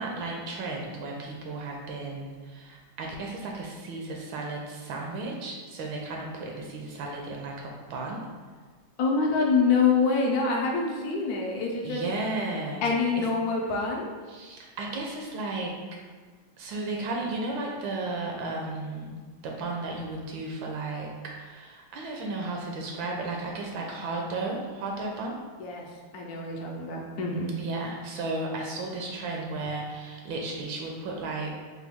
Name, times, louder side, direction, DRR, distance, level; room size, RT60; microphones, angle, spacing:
voice 1, 0.0-8.3 11.8-12.8 13.2-13.3 14.3-15.7 16.6-25.4 27.6-31.5, right 2 dB, 75° right, 0 dB, 1.3 m, -34 dB
voice 2, 9.0-12.0 12.8-14.1 25.6-25.9 26.1-27.5, left 4 dB, 75° left, 0 dB, 0.8 m, -26 dB
4.6 x 2.2 x 3.4 m, 1.5 s
omnidirectional pair, 2.2 m